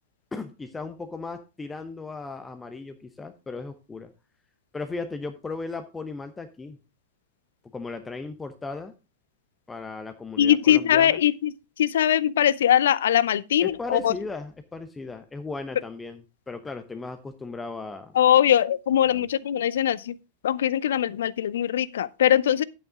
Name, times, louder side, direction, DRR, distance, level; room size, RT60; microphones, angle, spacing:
voice 1, 0.3-4.1 4.7-6.8 7.7-8.9 9.7-11.2 13.6-18.1 19.0-19.3, left 3 dB, 10° left, 0.8 m, -36 dB
voice 2, 10.4-11.5 11.8-14.1 18.2-20.2 20.4-22.6, left 10 dB, 60° left, 0.5 m, -21 dB
10.5 x 8.8 x 3.6 m
figure-of-eight pair, 90°, 0 cm